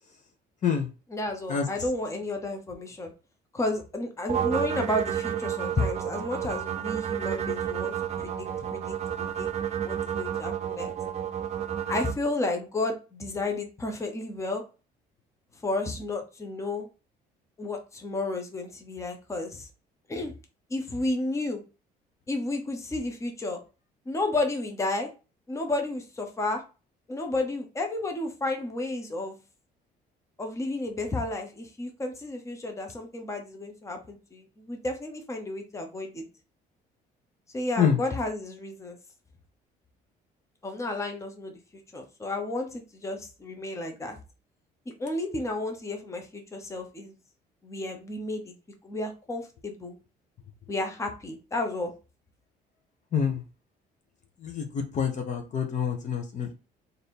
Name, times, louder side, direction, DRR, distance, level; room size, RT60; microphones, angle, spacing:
voice 1, 1.1-3.1 3.5-9.5 9.8-10.9 11.9-14.6 15.6-16.9 17.6-19.7 20.1-20.3 20.7-21.6 22.3-23.6 24.1-25.1 25.5-26.6 27.1-29.4 30.4-36.2 37.5-39.0 40.6-41.5 41.9-44.2 45.0-47.2 47.6-48.5 48.8-50.0 50.7-51.9, left 2 dB, 15° left, 3 dB, 0.9 m, -32 dB
sound 1, 4.3-12.1, right 9 dB, 40° right, 0.6 m, -31 dB
voice 2, 53.1-53.4 54.4-56.5, left 7 dB, 45° left, 4 dB, 0.9 m, -26 dB
3.3 x 2.7 x 4.3 m, 0.31 s
cardioid pair, 110°, 17 cm